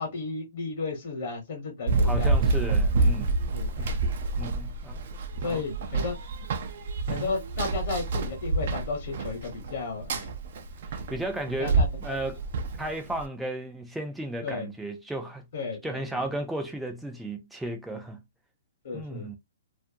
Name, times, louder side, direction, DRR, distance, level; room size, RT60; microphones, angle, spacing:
voice 1, 0.0-2.6 3.5-4.0 5.4-6.2 7.1-10.3 11.6-12.2 14.4-14.7 15.5-16.2 18.8-19.4, left 4 dB, 55° left, 1.0 m, -34 dB
Run, 1.9-13.2, right 3 dB, 55° right, 0.5 m, -28 dB
voice 2, 2.0-3.4 3.8-4.0 4.4-5.0 5.4-5.6 7.1-7.4 10.9-12.4 12.8-15.5 15.8-18.2 18.9-19.4, right 1 dB, 5° right, 0.5 m, -34 dB
2.5 x 2.1 x 2.5 m
hypercardioid pair, 145°, 0 cm